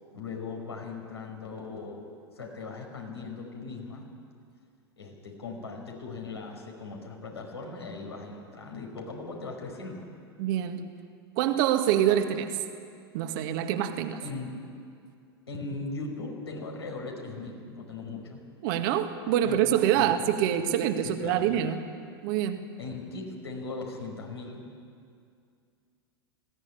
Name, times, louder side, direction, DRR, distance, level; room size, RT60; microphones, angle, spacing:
voice 1, 0.1-4.1 5.0-10.1 14.2-14.6 15.5-18.4 19.4-19.6 19.9-20.1 21.0-21.6 22.8-24.6, left 3 dB, 80° left, 0 dB, 5.1 m, -39 dB
voice 2, 10.4-10.9 11.4-12.5 13.1-14.2 18.6-21.8 22.2-22.6, right 10 dB, 55° right, 7 dB, 1.9 m, -25 dB
20.0 x 16.5 x 9.9 m, 2.3 s
figure-of-eight pair, 90°, 13 cm